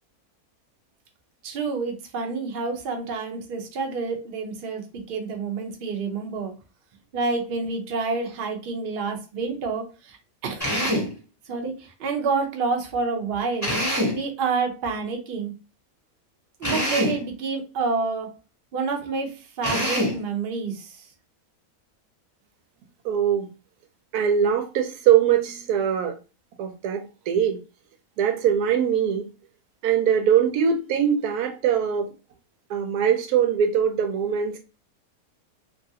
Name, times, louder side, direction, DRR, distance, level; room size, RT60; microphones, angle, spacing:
voice 1, 1.4-6.5 7.1-10.2 10.4-11.0 11.5-13.7 14.1-15.5 16.6-18.3 18.7-21.0, right 4 dB, 55° right, 0.6 m, -28 dB
Drill, 10.6-11.1 13.6-14.2 16.6-17.2 19.6-20.2, equal, 15° left, 0.6 m, -24 dB
voice 2, 23.0-23.5 24.1-26.2 26.6-27.6 28.2-29.3 29.8-32.1 32.7-34.6, right 8 dB, 90° right, 1.1 m, -22 dB
3.0 x 2.4 x 2.7 m
omnidirectional pair, 1.6 m